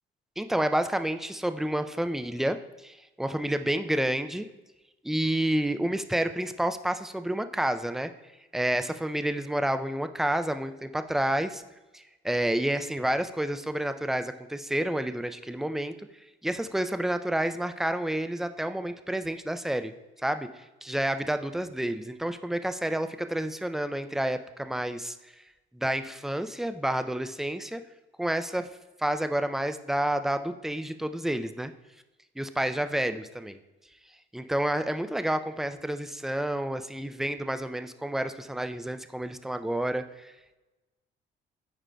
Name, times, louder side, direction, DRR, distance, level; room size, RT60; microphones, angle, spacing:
voice 1, 0.4-4.5 5.0-8.1 8.5-11.6 11.9-15.9 16.4-19.9 20.2-25.2 25.7-27.8 28.2-28.7 29.0-31.7 32.4-33.6 34.3-40.3, right 1 dB, ahead, 9 dB, 0.3 m, -29 dB
8.9 x 4.8 x 2.2 m, 1.1 s
cardioid pair, 90°, 20 cm